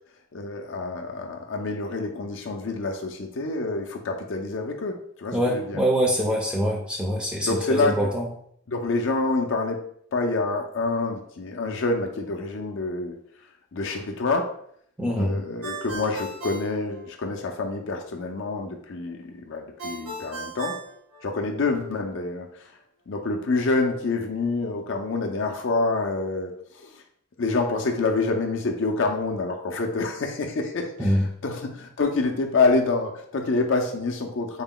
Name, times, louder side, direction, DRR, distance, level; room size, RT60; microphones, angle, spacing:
voice 1, 0.3-5.8 7.4-8.1 8.7-9.8 10.1-13.2 13.7-14.5 15.2-20.8 21.2-22.7 23.1-27.0 27.4-34.6, left 3 dB, 55° left, 3 dB, 0.5 m, -27 dB
voice 2, 5.3-8.3 15.0-15.4 31.0-31.2, equal, 5° right, -1 dB, 0.5 m, -24 dB
Ringtone, 15.6-17.6 19.8-21.8, right 2 dB, 90° right, 1.0 m, -37 dB
3.8 x 2.2 x 3.7 m, 0.66 s
head